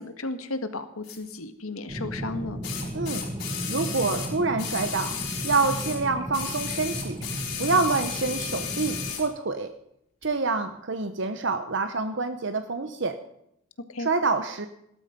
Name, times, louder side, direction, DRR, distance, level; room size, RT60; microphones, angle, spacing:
voice 1, 0.0-2.6 13.9-14.1, left 2 dB, 85° left, 9 dB, 1.8 m, -34 dB
sound 1, 1.0-1.2 2.6-6.0 6.3-9.3 10.2-10.3, left 8 dB, 50° left, 5.7 m, -34 dB
sound 2, 1.9-9.1, right 1 dB, 15° right, 1.3 m, -35 dB
voice 2, 2.9-3.2 3.7-5.2 5.4-7.2 7.6-9.7 10.2-13.2 14.0-14.7, right 3 dB, 55° right, 9 dB, 0.9 m, -27 dB
17.5 x 13.0 x 5.3 m, 0.78 s
head